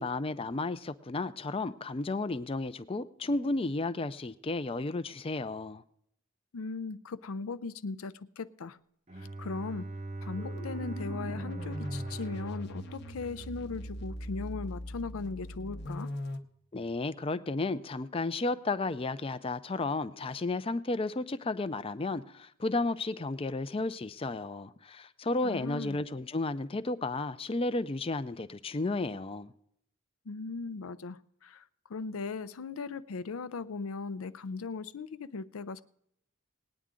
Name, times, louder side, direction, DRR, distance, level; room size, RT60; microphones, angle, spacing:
voice 1, 0.0-5.8 16.7-29.5, left 2 dB, 25° left, 0.5 m, -33 dB
voice 2, 6.5-8.8 9.2-10.0 10.2-16.1 25.4-26.0 30.3-35.8, left 4 dB, 80° left, 0.5 m, -38 dB
Bowed string instrument, 9.1-14.0, right 2 dB, 30° right, 0.7 m, -40 dB
sound 1, 10.4-16.4, left 1 dB, 55° left, 0.8 m, -41 dB
19.5 x 9.3 x 3.7 m
head